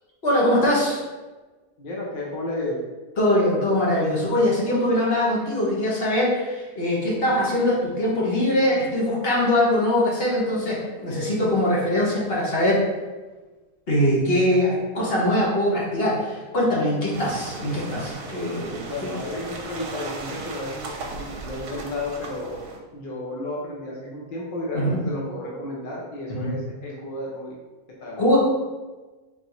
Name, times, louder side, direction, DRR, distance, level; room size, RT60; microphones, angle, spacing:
voice 1, 0.2-1.0 3.2-12.8 13.9-19.1 24.7-25.0 26.4-26.5 28.2-28.4, left 1 dB, 40° left, -5 dB, 1.2 m, -22 dB
voice 2, 1.8-2.8 18.8-22.5 22.9-27.5 28.0-28.2, left 2 dB, 60° left, -4 dB, 0.5 m, -32 dB
sound 1, 17.1-22.8, right 3 dB, 70° right, 1.1 m, -36 dB
4.0 x 3.4 x 3.0 m, 1.2 s
omnidirectional pair, 1.8 m